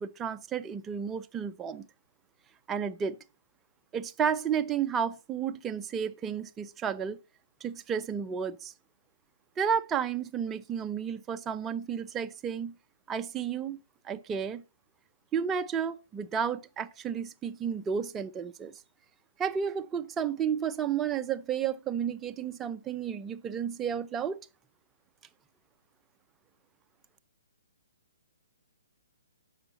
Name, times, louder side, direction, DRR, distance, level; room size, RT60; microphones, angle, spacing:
voice 1, 0.0-1.9 2.7-3.2 3.9-7.2 7.6-8.7 9.6-12.7 13.1-13.8 14.0-14.6 15.3-18.7 19.4-24.4, right 7 dB, 15° right, 0.6 m, -32 dB
8.0 x 5.8 x 5.9 m
hypercardioid pair, 145°, 0 cm